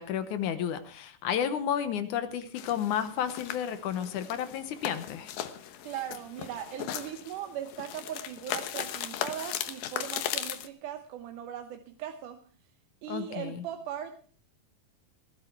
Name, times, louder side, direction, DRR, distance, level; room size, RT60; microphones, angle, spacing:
voice 1, 0.0-5.3 13.1-13.6, left 9 dB, 70° left, 11 dB, 2.3 m, -32 dB
sound 1, 2.6-10.7, left 11 dB, 85° left, 2.8 m, -37 dB
voice 2, 5.8-12.4 13.0-14.2, right 10 dB, 75° right, 6 dB, 2.4 m, -39 dB
19.0 x 12.0 x 4.6 m, 0.43 s
omnidirectional pair, 3.9 m